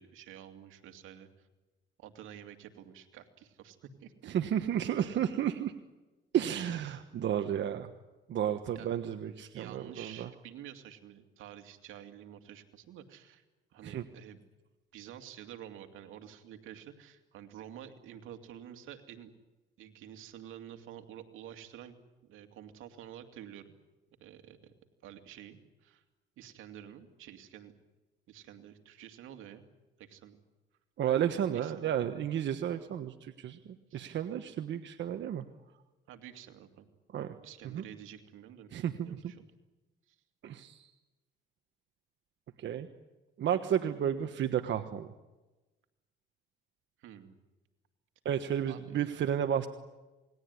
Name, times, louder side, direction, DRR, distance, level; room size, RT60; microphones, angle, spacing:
voice 1, 0.0-1.5 2.0-4.3 5.0-5.2 7.1-7.2 8.7-9.0 9.5-13.4 13.7-14.4 14.9-19.3 19.8-22.0 22.3-23.7 24.2-24.7 25.0-26.0 26.4-27.7 28.3-29.6 30.0-30.4 31.5-32.0 33.9-34.1 36.1-36.9 37.4-38.7 39.0-39.4 40.1-40.2 47.0-47.3 48.7-49.0, right 10 dB, 90° right, 6 dB, 2.5 m, -49 dB
voice 2, 4.3-5.7 6.3-7.9 8.3-10.3 13.8-14.1 31.0-35.4 37.1-37.3 37.7-37.8 38.7-39.2 40.4-40.9 42.6-42.9 43.4-45.1 48.2-49.7, right 9 dB, 70° right, 7 dB, 1.4 m, -32 dB
28.5 x 20.5 x 9.7 m, 1.1 s
cardioid pair, 90°, 20 cm